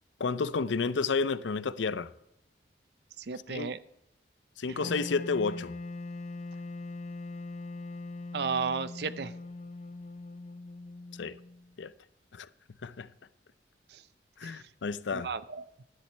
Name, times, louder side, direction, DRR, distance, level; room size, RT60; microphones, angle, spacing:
voice 1, 0.2-2.1 3.5-3.7 4.6-5.7 11.2-11.4 11.8-11.9 12.3-12.5 12.8-13.1 14.4-15.3, left 4 dB, 90° left, 0.5 m, -31 dB
voice 2, 3.2-3.8 4.7-4.8 8.3-9.3 13.9-14.0 14.4-14.7 15.1-15.8, right 5 dB, 65° right, 0.5 m, -34 dB
Wind instrument woodwind instrument, 4.8-11.8, left 2 dB, 35° left, 0.4 m, -41 dB
10.5 x 10.5 x 3.3 m
head